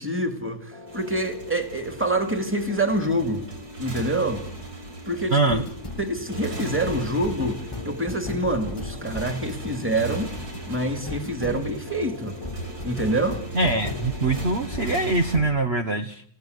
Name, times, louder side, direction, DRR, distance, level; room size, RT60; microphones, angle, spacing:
voice 1, 0.0-3.5 3.8-4.5 5.1-5.7 6.0-10.3 10.7-12.4 12.8-13.4, right 1 dB, 5° right, 2.5 m, -26 dB
sound 1, 0.7-15.0 15.3-15.6, left 2 dB, 20° left, 1.6 m, -38 dB
Motorcycle, 0.9-15.4, right 3 dB, 75° right, 5.3 m, -38 dB
voice 2, 5.3-5.6 13.5-16.2, right 2 dB, 45° right, 1.4 m, -23 dB
29.0 x 17.5 x 8.2 m
omnidirectional pair, 1.7 m